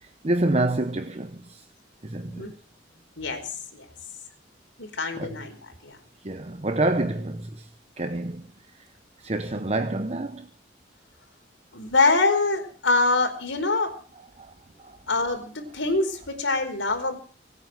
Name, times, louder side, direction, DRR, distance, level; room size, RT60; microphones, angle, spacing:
voice 1, 0.0-1.6 2.0-2.5 5.2-5.4 6.2-7.7 8.0-8.5 9.2-10.5 14.4-14.5 14.8-15.0, right 2 dB, 35° right, 0.9 m, -27 dB
voice 2, 4.8-5.6 5.8-6.0 11.7-13.9 15.1-17.2, left 3 dB, 80° left, 4.6 m, -24 dB
24.5 x 9.1 x 6.2 m
head